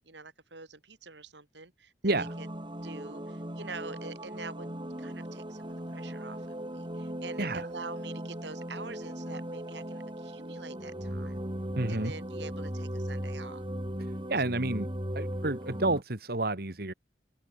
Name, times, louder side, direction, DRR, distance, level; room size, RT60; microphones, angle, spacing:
voice 1, 0.0-1.9 2.2-2.5 2.8-4.7 5.0-11.4 11.9-13.6, right 4 dB, 85° right, 3.9 m, -46 dB
sound 1, 2.1-16.0, equal, 30° right, 4.8 m, -38 dB
voice 2, 11.8-12.1 14.3-16.9, right 2 dB, 60° right, 2.2 m, -30 dB
head